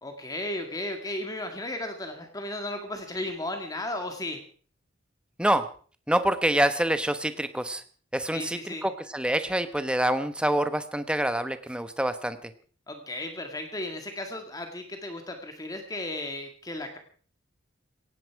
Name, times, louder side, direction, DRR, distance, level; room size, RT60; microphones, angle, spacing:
voice 1, 0.0-4.4 8.3-8.9 12.9-17.0, left 1 dB, 20° left, 5 dB, 2.0 m, -35 dB
voice 2, 6.1-7.8 8.1-12.5, right 1 dB, 5° right, 10 dB, 1.1 m, -26 dB
17.5 x 16.5 x 4.8 m, 0.43 s
head